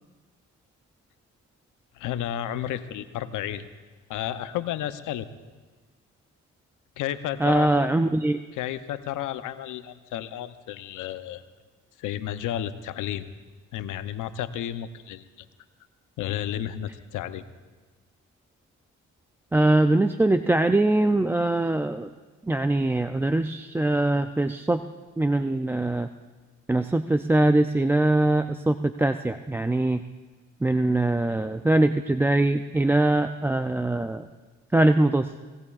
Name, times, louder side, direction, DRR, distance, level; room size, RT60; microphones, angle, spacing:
voice 1, 1.9-3.6 4.1-5.3 7.0-7.9 8.5-11.5 12.0-13.2 13.7-15.2 16.2-17.4, left 11 dB, 85° left, 11 dB, 0.7 m, -32 dB
voice 2, 7.4-8.4 19.5-22.1 22.5-24.8 25.2-26.1 26.7-30.0 30.6-34.3 34.7-35.3, right 2 dB, 10° right, 9 dB, 0.3 m, -22 dB
22.5 x 19.5 x 2.4 m, 1.3 s
cardioid pair, 90°, 30 cm